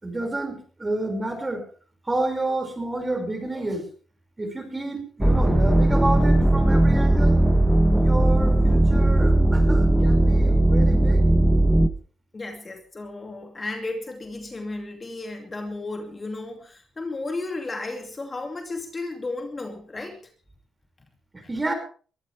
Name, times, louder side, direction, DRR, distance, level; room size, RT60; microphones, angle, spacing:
voice 1, 0.0-1.6 2.0-3.9 4.4-7.4 8.0-11.2 21.3-21.7, right 2 dB, 20° right, 5 dB, 5.8 m, -29 dB
sound 1, 5.2-11.9, right 1 dB, ahead, 1.2 m, -18 dB
voice 2, 12.3-20.2, left 2 dB, 25° left, 4 dB, 2.6 m, -34 dB
22.5 x 15.0 x 3.5 m, 0.40 s
cardioid pair, 90°, 0 cm